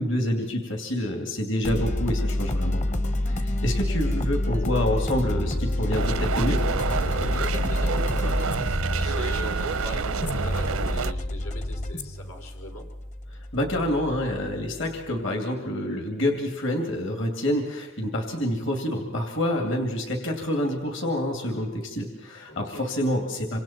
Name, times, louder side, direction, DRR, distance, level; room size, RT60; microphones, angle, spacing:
voice 1, 0.0-2.8 3.3-6.6 13.3-23.6, left 1 dB, 60° left, 3 dB, 2.8 m, -27 dB
sound 1, 1.6-15.0, left 1 dB, 35° left, 1.0 m, -28 dB
sound 2, 5.9-11.1, right 4 dB, 85° right, 0.8 m, -28 dB
voice 2, 7.0-12.8 22.5-22.9, equal, 90° left, 1 dB, 4.0 m, -40 dB
28.0 x 25.5 x 4.4 m, 1.1 s
head